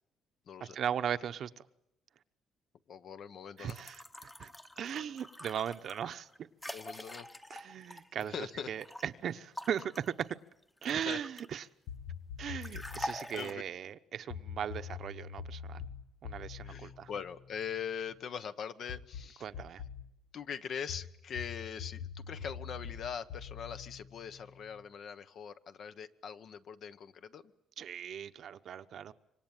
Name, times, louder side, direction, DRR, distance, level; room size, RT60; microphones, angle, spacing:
voice 1, 0.6-1.7 3.6-4.5 4.8-6.7 7.5-10.4 10.8-11.7 12.4-15.8 16.2-17.1 19.4-19.8 27.8-29.1, right 9 dB, 50° right, 1.0 m, -38 dB
voice 2, 2.9-3.8 6.7-7.3 8.3-8.7 10.9-11.2 12.5-12.9 13.3-13.6 16.6-19.5 20.3-27.4, left 7 dB, 55° left, 1.2 m, -42 dB
sound 1, 3.6-9.1 9.6-11.7 12.6-13.5, left 1 dB, 10° left, 1.1 m, -45 dB
sound 2, 11.9-13.2 14.3-18.0 18.9-20.1 20.9-24.8, left 7 dB, 80° left, 1.5 m, -45 dB
26.5 x 24.5 x 9.1 m
cardioid pair, 140°, 0 cm